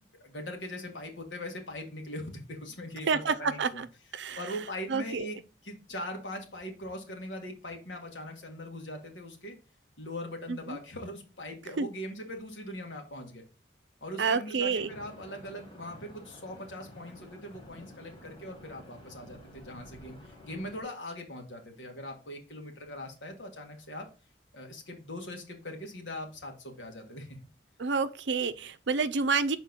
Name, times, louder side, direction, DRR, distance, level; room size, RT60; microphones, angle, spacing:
voice 1, 0.2-3.8 4.4-5.4 5.6-9.6 10.0-13.4 14.0-24.1 24.5-27.4, left 1 dB, 80° left, 1.7 m, -41 dB
voice 2, 3.1-3.9 4.1-4.4 4.9-5.3 10.5-10.8 11.8-11.9 14.2-14.9 27.8-29.6, right 5 dB, 75° right, 0.5 m, -29 dB
sound 1, 14.7-20.8, left 1 dB, 25° left, 1.4 m, -51 dB
5.9 x 4.4 x 4.0 m
head